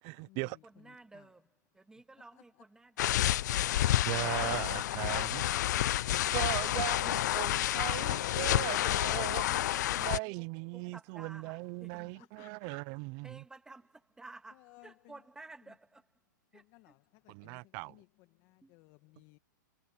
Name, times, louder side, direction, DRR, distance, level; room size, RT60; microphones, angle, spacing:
voice 1, 0.0-0.6 4.0-5.4 6.3-9.7 10.0-13.4 17.3-18.0, right 28 dB, 35° right, 0.8 m, -38 dB
voice 2, 0.9-1.4 1.8-3.1 9.4-10.0 10.9-11.5 11.8-12.1 13.2-13.9 14.2-16.0 16.5-16.6 18.6-18.7, right 3 dB, 5° right, 2.4 m, -52 dB
voice 3, 2.3-2.6 4.7-5.3 12.1-12.8 14.5-15.2 15.7-15.8 16.5-17.6 17.9-18.0 18.4-19.4, left 22 dB, 35° left, 1.9 m, -59 dB
sound 1, 3.0-10.2, left 13 dB, 60° left, 0.4 m, -30 dB
hypercardioid pair, 140°, 11 cm